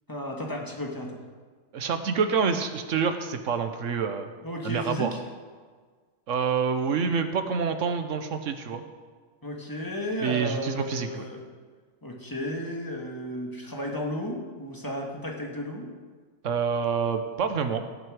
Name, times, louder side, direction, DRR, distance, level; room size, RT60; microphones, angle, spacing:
voice 1, 0.1-1.2 4.4-5.2 9.4-11.4 12.0-15.9, equal, 15° left, 0 dB, 1.6 m, -33 dB
voice 2, 1.7-4.3 4.6-5.2 6.3-8.8 10.2-11.3 16.4-17.8, right 6 dB, 70° right, 8 dB, 1.3 m, -27 dB
17.5 x 7.8 x 4.9 m, 1.5 s
omnidirectional pair, 1.3 m